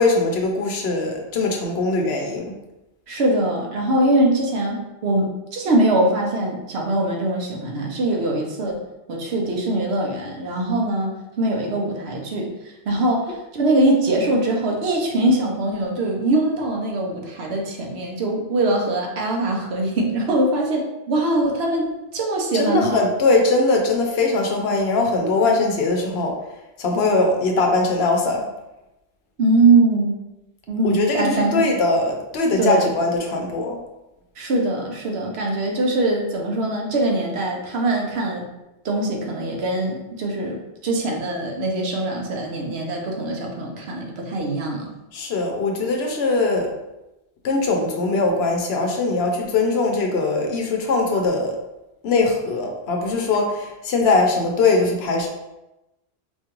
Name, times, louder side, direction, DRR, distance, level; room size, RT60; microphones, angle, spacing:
voice 1, 0.0-2.5 22.5-26.3 26.8-28.4 30.8-33.8 45.1-46.7 47.4-51.6 52.0-55.3, left 3 dB, 70° left, 1 dB, 0.8 m, -21 dB
voice 2, 3.1-8.8 9.1-12.5 12.9-23.1 29.4-30.2 30.7-31.7 32.6-32.9 34.4-38.4 38.8-44.9, right 2 dB, 65° right, 0 dB, 0.9 m, -22 dB
4.4 x 2.4 x 2.9 m, 0.96 s
omnidirectional pair, 1.2 m